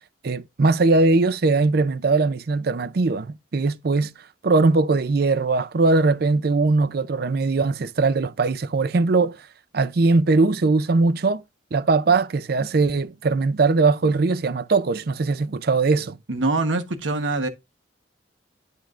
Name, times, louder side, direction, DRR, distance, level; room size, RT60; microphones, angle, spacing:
voice 1, 0.2-4.1 4.4-9.4 9.7-11.4 11.7-16.2, right 3 dB, 50° right, 0.5 m, -20 dB
voice 2, 16.3-17.5, right 2 dB, 75° right, 1.1 m, -24 dB
10.5 x 4.5 x 2.4 m
head